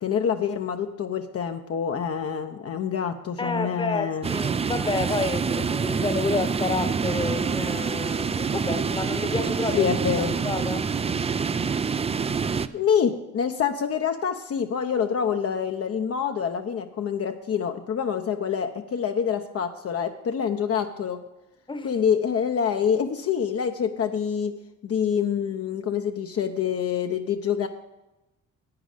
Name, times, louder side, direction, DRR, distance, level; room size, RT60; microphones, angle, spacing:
voice 1, 0.0-4.3 9.7-10.4 12.7-21.2 21.8-27.7, left 7 dB, 50° left, 5 dB, 0.8 m, -26 dB
voice 2, 3.4-9.9 10.4-10.9 21.7-21.9, left 3 dB, 15° left, 9 dB, 1.0 m, -29 dB
sound 1, 4.2-12.7, right 5 dB, 20° right, 0.4 m, -26 dB
10.5 x 8.7 x 5.1 m, 0.98 s
cardioid pair, 90°, 30 cm